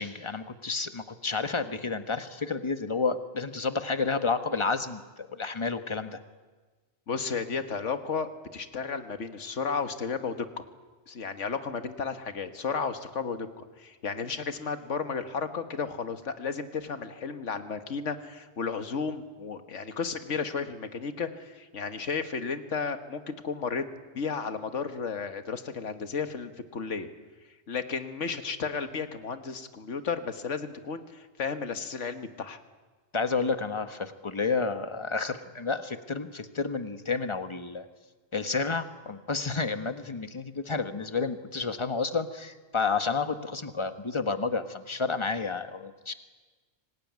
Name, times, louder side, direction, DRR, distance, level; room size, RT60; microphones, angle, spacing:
voice 1, 0.0-6.2 33.1-37.8 38.3-46.1, left 4 dB, 25° left, 9 dB, 1.2 m, -30 dB
voice 2, 7.1-10.6 11.1-23.8 24.2-27.1 27.7-32.6, left 5 dB, 85° left, 9 dB, 1.8 m, -33 dB
25.5 x 19.0 x 9.4 m, 1.3 s
omnidirectional pair, 1.2 m